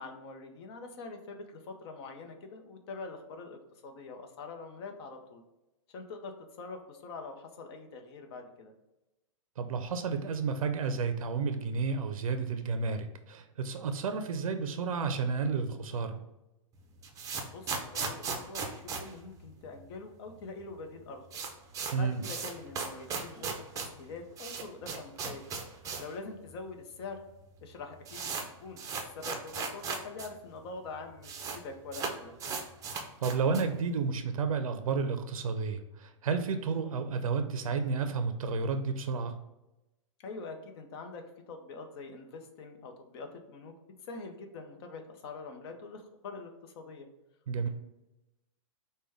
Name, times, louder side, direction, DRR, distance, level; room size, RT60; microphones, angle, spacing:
voice 1, 0.0-3.6 3.8-5.4 5.9-8.7 17.5-21.3 22.0-25.4 26.0-27.2 27.6-28.8 29.1-32.3 40.2-43.7 44.1-47.1, left 3 dB, 50° left, 4 dB, 0.7 m, -44 dB
voice 2, 9.6-16.2 21.9-22.2 33.2-39.4 47.5-47.7, right 5 dB, 90° right, 7 dB, 0.5 m, -31 dB
sound 1, 16.8-20.0 20.3-20.4 20.6-20.7 21.0-26.2 26.5-26.6 27.3-27.4 27.6-30.3 30.6-30.7 30.8-31.6 31.9-33.8, right 5 dB, 20° right, 0.5 m, -37 dB
5.0 x 2.2 x 3.4 m, 0.95 s
hypercardioid pair, 135°, 17 cm